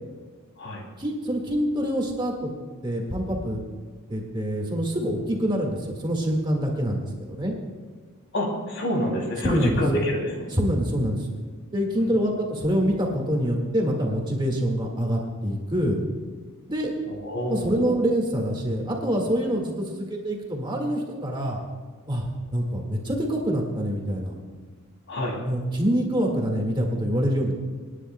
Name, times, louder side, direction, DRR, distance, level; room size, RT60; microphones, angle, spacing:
voice 1, 1.0-2.5 2.8-3.6 4.1-7.0 7.3-7.6 9.4-10.0 10.5-11.3 11.7-16.0 16.7-16.9 17.5-21.6 22.1-22.3 22.5-24.3 25.5-27.5, equal, 20° right, 0 dB, 1.8 m, -25 dB
voice 2, 8.3-10.5 17.1-17.9 25.1-25.4, equal, 60° left, 0 dB, 2.8 m, -27 dB
28.0 x 9.9 x 2.2 m, 1.5 s
head